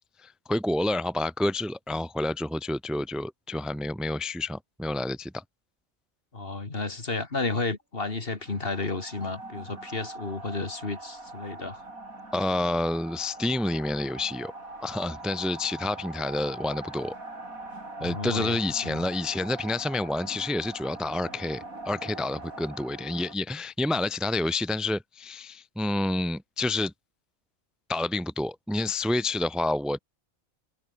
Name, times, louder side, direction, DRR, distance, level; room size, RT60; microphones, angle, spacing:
voice 1, 0.2-5.4 12.3-14.5 14.8-17.1 18.0-26.9 27.9-30.0, left 2 dB, ahead, 1.1 m, -29 dB
voice 2, 6.3-11.8 18.0-19.0, left 3 dB, 45° left, 2.6 m, -32 dB
sound 1, 8.4-23.4, right 2 dB, 85° right, 6.2 m, -42 dB
omnidirectional pair, 1.4 m